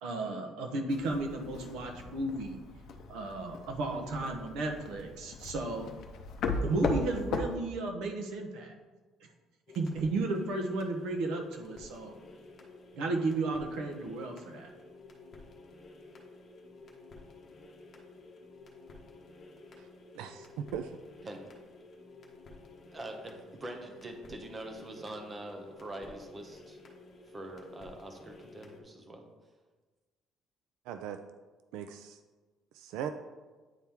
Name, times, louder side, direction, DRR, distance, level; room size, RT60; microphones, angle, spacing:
voice 1, 0.0-2.6 3.1-5.9 6.6-8.7 9.7-12.1 12.9-14.7, right 2 dB, 70° right, 4 dB, 1.0 m, -33 dB
sound 1, 0.9-7.6, left 3 dB, 45° left, 0.6 m, -37 dB
sound 2, 9.7-28.8, left 3 dB, 30° left, 1.1 m, -52 dB
voice 2, 20.1-20.9 30.9-31.2 31.7-32.2 32.7-33.1, right 9 dB, 90° right, 8 dB, 0.3 m, -39 dB
voice 3, 22.9-26.8 27.3-29.2, right 1 dB, 15° right, 4 dB, 0.7 m, -44 dB
9.3 x 4.4 x 3.6 m, 1.3 s
cardioid pair, 180°, 0 cm